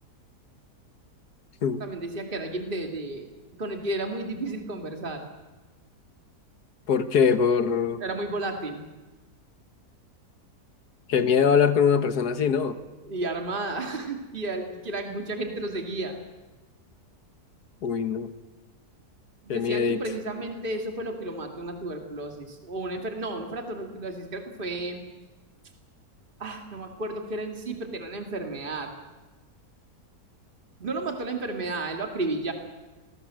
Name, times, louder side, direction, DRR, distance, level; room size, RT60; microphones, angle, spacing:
voice 1, 1.8-3.3 3.6-5.3 8.0-8.9 13.0-16.2 19.4-25.0 26.4-28.9 30.8-32.5, right 2 dB, 30° right, 4 dB, 2.6 m, -32 dB
voice 2, 6.9-8.0 11.1-12.8 17.8-18.3 19.5-20.0, left 6 dB, 75° left, 11 dB, 1.9 m, -22 dB
29.0 x 20.0 x 7.7 m, 1.2 s
omnidirectional pair, 1.7 m